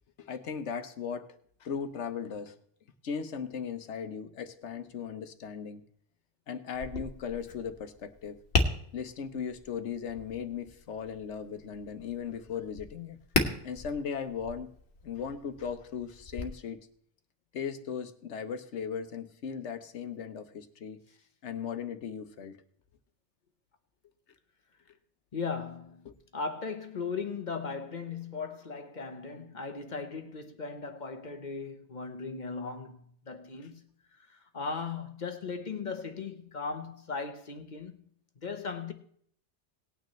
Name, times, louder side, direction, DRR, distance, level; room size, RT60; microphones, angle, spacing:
voice 1, 0.2-2.6 3.0-5.8 6.5-8.4 8.9-13.2 13.6-14.7 15.0-16.9 17.5-21.0 21.4-22.6 26.1-26.2, left 7 dB, 80° left, 1.2 m, -37 dB
Tap, 6.7-16.4, left 3 dB, 65° left, 1.6 m, -36 dB
voice 2, 25.3-26.1 26.3-33.9 34.2-38.0 38.4-38.9, left 4 dB, 45° left, 1.0 m, -37 dB
19.0 x 9.1 x 3.1 m
omnidirectional pair, 1.2 m